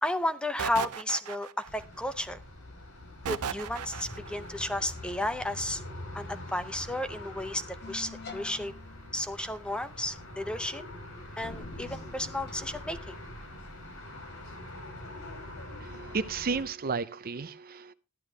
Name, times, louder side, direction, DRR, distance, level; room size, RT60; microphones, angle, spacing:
voice 1, 0.0-2.4 3.3-5.8 6.1-7.6 7.9-8.7 9.1-10.8 11.4-13.1, left 1 dB, 5° left, 11 dB, 0.6 m, -33 dB
sound 1, 0.6-1.8 3.2-4.3, right 7 dB, 85° right, 0.7 m, -35 dB
sound 2, 1.6-16.6, left 1 dB, 70° left, 4.4 m, -44 dB
sound 3, 7.8-14.0, left 2 dB, 50° left, 1.3 m, -47 dB
voice 2, 15.8-17.9, right 4 dB, 40° right, 14 dB, 0.6 m, -33 dB
14.0 x 11.5 x 3.3 m, 0.30 s
head